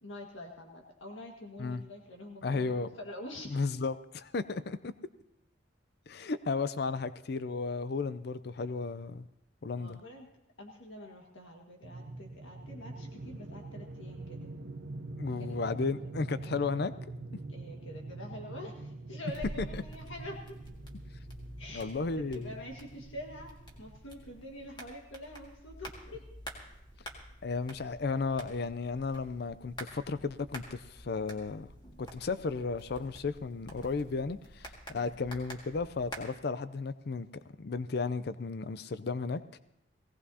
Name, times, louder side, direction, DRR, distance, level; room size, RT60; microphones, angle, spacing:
voice 1, 0.0-3.5 9.8-10.3 10.6-14.5 15.4-16.0 17.5-20.6 21.6-26.2 34.9-35.1, left 1 dB, 85° left, 0 dB, 1.7 m, -46 dB
voice 2, 2.4-2.9 3.5-4.9 6.1-9.3 9.6-10.0 15.2-16.9 19.7-19.8 21.7-22.5 27.4-31.7 32.0-37.3 37.6-39.6, left 4 dB, 55° left, 13 dB, 0.4 m, -34 dB
sound 1, 11.8-24.1, right 2 dB, 65° right, 0.7 m, -44 dB
sound 2, 19.3-36.2, equal, 25° left, 1.9 m, -48 dB
19.5 x 17.0 x 2.8 m, 0.82 s
head